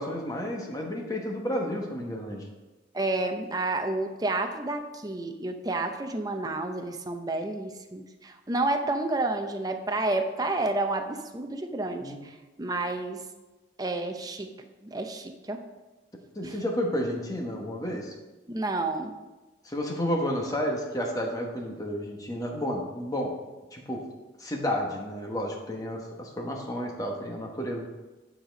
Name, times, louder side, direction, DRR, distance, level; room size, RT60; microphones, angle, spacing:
voice 1, 0.0-2.4 12.0-12.2 16.4-18.1 19.6-23.3 23.7-24.0 24.4-27.9, equal, 20° left, 0 dB, 1.1 m, -31 dB
voice 2, 2.9-13.2 13.8-14.5 14.8-15.6 16.4-16.6 18.5-19.2, right 2 dB, 20° right, 5 dB, 0.6 m, -30 dB
9.7 x 4.2 x 5.1 m, 1.1 s
head